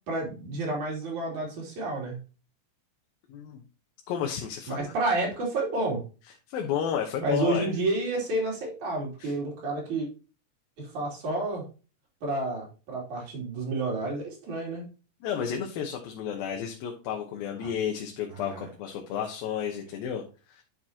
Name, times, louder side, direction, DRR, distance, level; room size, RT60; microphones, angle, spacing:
voice 1, 0.1-2.2 4.7-6.0 7.2-10.1 10.8-11.6 12.2-14.9 17.6-17.7 18.3-18.6, right 2 dB, 55° right, -2 dB, 4.3 m, -30 dB
voice 2, 3.3-3.6 4.1-4.9 6.5-7.7 9.2-9.3 15.2-20.2 20.5-20.6, left 8 dB, 80° left, 2 dB, 2.8 m, -32 dB
10.0 x 6.1 x 2.9 m, 0.34 s
omnidirectional pair, 4.1 m